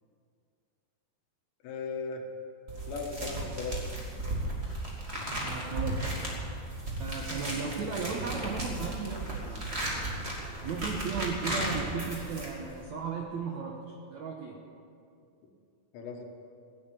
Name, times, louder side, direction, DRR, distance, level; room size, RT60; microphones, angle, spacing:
voice 1, 1.6-2.2 2.9-4.0 15.9-16.3, left 4 dB, 85° left, 2 dB, 3.7 m, -37 dB
sound 1, 2.7-12.8, right 1 dB, 20° right, 2.1 m, -35 dB
voice 2, 5.4-6.1 7.0-9.7 10.6-14.6, right 5 dB, 75° right, 0 dB, 1.7 m, -35 dB
16.5 x 9.2 x 8.6 m, 2.5 s
omnidirectional pair, 4.9 m